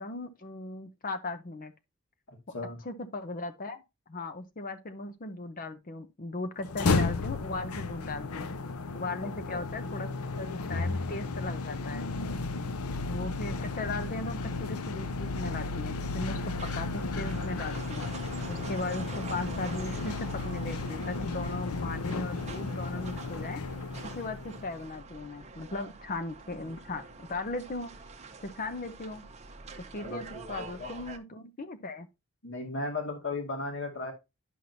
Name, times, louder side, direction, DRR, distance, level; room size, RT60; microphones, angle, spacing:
voice 1, 0.0-1.7 2.5-2.6 2.8-3.8 4.1-8.5 8.9-10.1 10.4-12.1 13.1-18.1 18.5-23.6 24.1-27.9 28.4-29.2 29.9-32.1, left 2 dB, 40° left, 0.7 m, -37 dB
voice 2, 2.3-2.8 9.5-9.6 13.1-13.2 26.6-26.7 30.0-30.9 32.4-34.1, left 2 dB, 55° left, 2.0 m, -36 dB
sound 1, 6.6-24.8, left 3 dB, 85° left, 0.7 m, -33 dB
sound 2, 16.4-31.2, right 4 dB, 30° right, 0.9 m, -46 dB
10.0 x 6.0 x 2.7 m
head